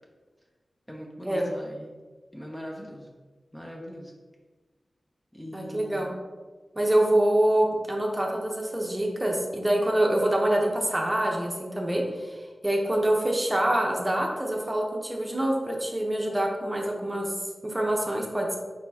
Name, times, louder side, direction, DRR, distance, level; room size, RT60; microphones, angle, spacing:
voice 1, 0.9-1.9 2.3-3.1 3.5-4.1 5.3-6.1, equal, 10° left, -1 dB, 0.7 m, -41 dB
voice 2, 5.5-6.1 6.8-17.3 17.6-18.6, right 1 dB, 20° right, 0 dB, 0.8 m, -25 dB
4.3 x 4.1 x 2.8 m, 1.3 s
cardioid pair, 55°, 0 cm